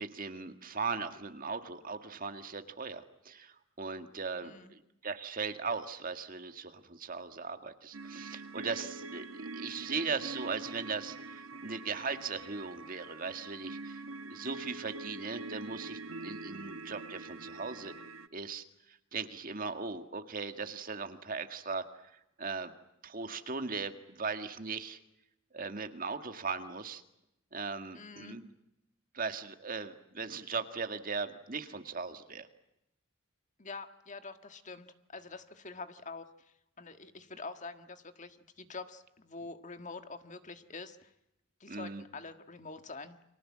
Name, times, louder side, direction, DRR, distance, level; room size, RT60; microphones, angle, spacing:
voice 1, 0.0-14.0 14.3-17.9 18.3-21.9 22.4-22.7 23.0-25.0 25.5-27.0 27.5-28.5 29.1-32.5 41.7-42.0, right 4 dB, 45° right, 8 dB, 1.9 m, -38 dB
voice 2, 4.4-4.7 27.9-28.4 33.6-41.1 41.6-43.2, left 3 dB, 35° left, 8 dB, 1.7 m, -46 dB
sound 1, 7.9-18.3, right 3 dB, 85° right, 1.2 m, -44 dB
30.0 x 24.5 x 7.5 m, 0.85 s
head